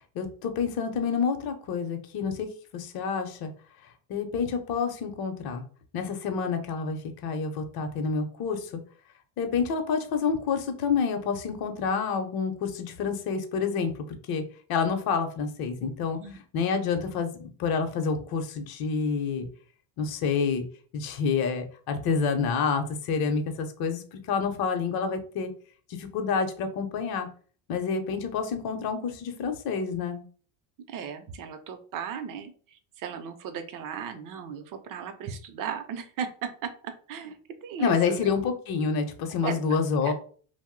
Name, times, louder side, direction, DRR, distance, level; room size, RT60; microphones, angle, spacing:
voice 1, 0.1-2.5 2.7-3.5 4.1-5.6 5.9-8.7 9.4-14.4 14.7-16.2 16.5-19.5 20.0-20.6 20.9-25.5 26.0-27.3 27.7-30.2 37.8-40.1, left 5 dB, 50° left, 6 dB, 0.7 m, -28 dB
voice 2, 30.9-36.3 36.6-36.7 37.1-38.3 39.4-39.6 40.0-40.1, right 7 dB, 45° right, 8 dB, 0.5 m, -36 dB
2.6 x 2.1 x 3.6 m, 0.43 s
supercardioid pair, 115°, 48 cm